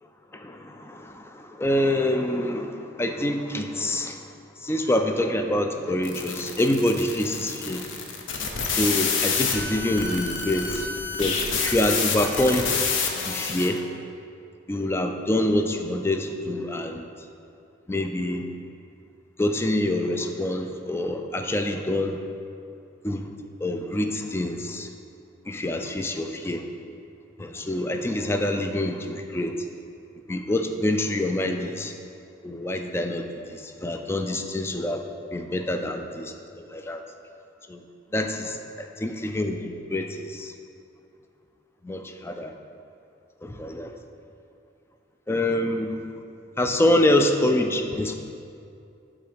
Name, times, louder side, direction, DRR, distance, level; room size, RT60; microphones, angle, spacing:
voice 1, 0.3-4.3 4.6-7.9 8.8-10.9 11.2-12.7 13.2-13.8 14.7-17.1 17.9-18.4 19.4-22.2 23.0-23.3 23.6-24.9 25.5-26.6 27.4-29.5 30.3-31.9 32.4-35.0 35.3-37.0 37.7-37.8 38.1-39.6 39.9-40.5 41.8-42.5 43.4-43.9 45.3-46.0 46.6-48.2, left 1 dB, 15° left, 5 dB, 0.3 m, -26 dB
sound 1, 6.0-13.8, left 5 dB, 85° left, 0.7 m, -28 dB
6.8 x 3.7 x 5.0 m, 2.5 s
head